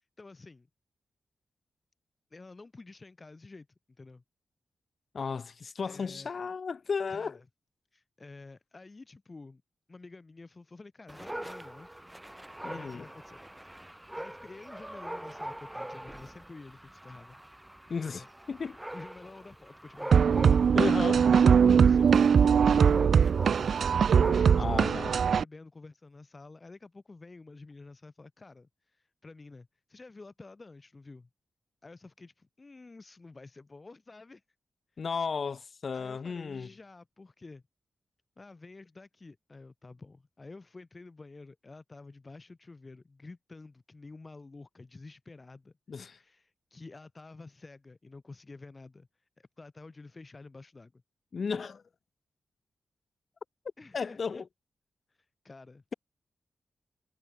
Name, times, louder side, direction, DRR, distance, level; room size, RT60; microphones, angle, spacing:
voice 1, 0.2-0.7 2.3-3.7 4.0-4.2 5.8-6.3 7.1-7.4 7.9-9.6 9.9-11.9 12.6-17.4 18.0-18.3 18.9-20.2 21.4-23.8 24.3-31.3 31.8-34.4 34.9-35.1 35.9-37.6 38.4-51.0 53.8-54.4 55.1-55.8, left 3 dB, 30° left, 5.7 m, -50 dB
voice 2, 5.1-7.4 12.6-13.0 17.9-18.8 20.7-21.3 24.6-25.1 35.0-36.7 45.9-46.2 51.3-51.8 53.9-54.4, left 5 dB, 55° left, 2.5 m, -34 dB
Dog, 11.1-24.8, right 1 dB, 10° right, 4.6 m, -43 dB
sound 1, 20.1-25.4, right 7 dB, 70° right, 0.9 m, -21 dB
wide cardioid pair, 95°, 0 cm